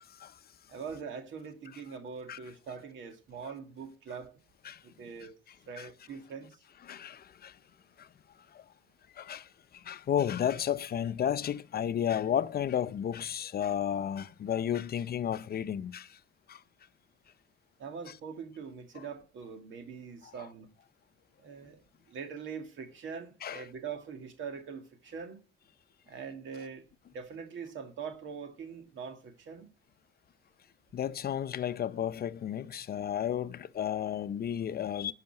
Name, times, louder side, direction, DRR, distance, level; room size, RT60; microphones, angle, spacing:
voice 1, 0.7-4.3 4.8-5.4 5.7-6.6 17.8-20.7 21.4-21.8 22.1-25.4 26.1-26.8 27.1-29.7, right 6 dB, 75° right, 2.1 m, -43 dB
voice 2, 6.9-7.6 8.0-8.1 8.5-8.6 9.2-16.2 16.5-16.6 23.4-23.6 30.9-35.1, left 9 dB, 50° left, 0.6 m, -33 dB
11.5 x 5.7 x 7.8 m
cardioid pair, 90°, 20 cm